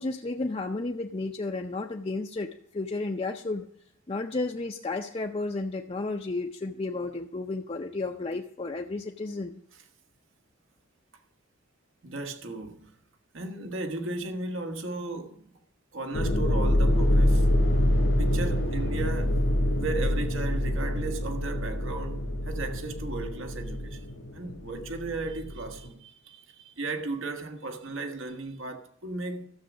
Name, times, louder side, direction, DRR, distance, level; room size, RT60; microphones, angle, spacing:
voice 1, 0.0-3.6 4.1-9.6, left 3 dB, 30° left, 0.5 m, -32 dB
voice 2, 12.0-12.9 13.3-15.6 15.9-17.5 18.2-19.4 19.8-29.4, right 3 dB, 80° right, 1.5 m, -36 dB
sound 1, 16.1-25.9, left 1 dB, 70° left, 1.4 m, -26 dB
13.0 x 7.3 x 6.1 m
head